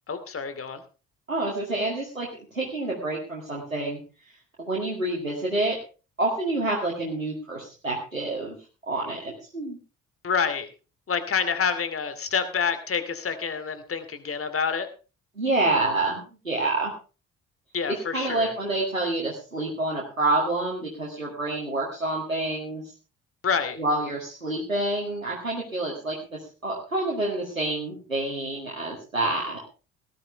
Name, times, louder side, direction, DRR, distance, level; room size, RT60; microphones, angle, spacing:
voice 1, 0.1-0.8 10.2-10.7 11.1-14.9 17.7-18.5 23.4-23.8, left 6 dB, 35° left, 11 dB, 2.5 m, -27 dB
voice 2, 1.3-4.0 4.6-5.8 6.2-8.6 8.9-9.8 15.4-16.9 17.9-22.8 23.8-29.7, right 2 dB, 90° right, -3 dB, 2.1 m, -28 dB
18.0 x 12.0 x 3.4 m, 0.34 s
figure-of-eight pair, 45°, 39 cm